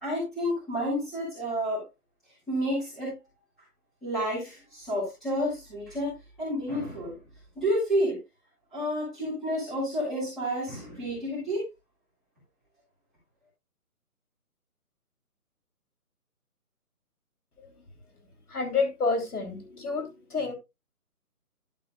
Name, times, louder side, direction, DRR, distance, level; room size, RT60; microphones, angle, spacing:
voice 1, 0.0-1.8 2.5-3.2 4.0-7.2 7.6-8.2 8.7-11.7, equal, ahead, 1.9 m, -30 dB
voice 2, 18.5-20.5, left 4 dB, 70° left, 3.4 m, -29 dB
11.5 x 7.1 x 2.3 m
hypercardioid pair, 175°, 46 cm